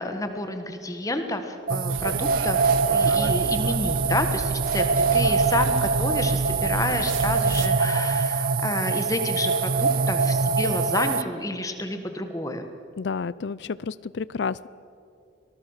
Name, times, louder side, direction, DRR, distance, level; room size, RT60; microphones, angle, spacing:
voice 1, 0.0-4.8 5.1-12.6, left 2 dB, 15° left, 7 dB, 1.5 m, -29 dB
sound 1, 1.7-11.2, right 4 dB, 45° right, 0.5 m, -23 dB
sound 2, 1.9-7.7, right 3 dB, 85° right, 1.0 m, -35 dB
voice 2, 13.0-14.7, left 5 dB, 60° left, 19 dB, 0.4 m, -30 dB
25.5 x 19.5 x 6.6 m, 2.7 s
head